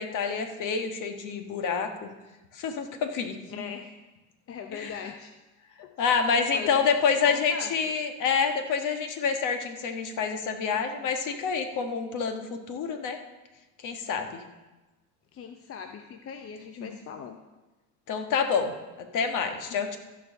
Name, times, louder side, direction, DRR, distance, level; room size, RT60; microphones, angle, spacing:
voice 1, 0.0-2.1 2.5-3.4 4.7-5.1 6.0-13.2 13.8-14.4 16.8-16.9 18.1-20.0, left 6 dB, 55° left, 6 dB, 1.5 m, -28 dB
voice 2, 3.5-3.9 4.5-5.3 5.8-7.7 15.3-17.4 19.7-19.8, left 7 dB, 35° left, 5 dB, 0.8 m, -41 dB
14.5 x 4.8 x 6.6 m, 1.1 s
supercardioid pair, 100°, 38 cm